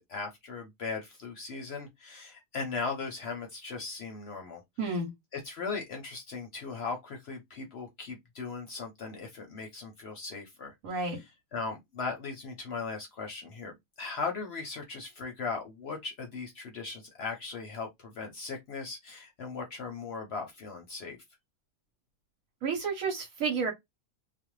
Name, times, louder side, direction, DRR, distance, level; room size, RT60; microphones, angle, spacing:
voice 1, 0.0-5.0 5.3-21.2, left 4 dB, 60° left, 0.8 m, -38 dB
voice 2, 4.8-5.1 10.8-11.2 22.6-23.7, right 4 dB, 80° right, 1.1 m, -31 dB
2.4 x 2.1 x 3.0 m
omnidirectional pair, 1.4 m